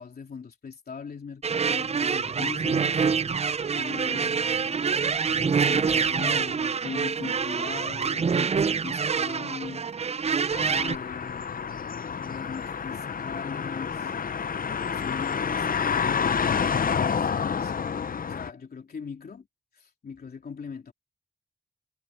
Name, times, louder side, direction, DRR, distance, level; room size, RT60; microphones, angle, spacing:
voice 1, 0.0-3.1 3.7-5.0 5.4-9.9 10.7-14.1 14.8-16.2 16.8-17.9 18.2-19.5 19.7-20.9, left 5 dB, 85° left, 3.3 m, -40 dB
sound 1, 1.4-10.9, right 6 dB, 45° right, 0.4 m, -26 dB
sound 2, 10.5-18.5, left 6 dB, 70° left, 0.7 m, -28 dB
cardioid pair, 45°, 15 cm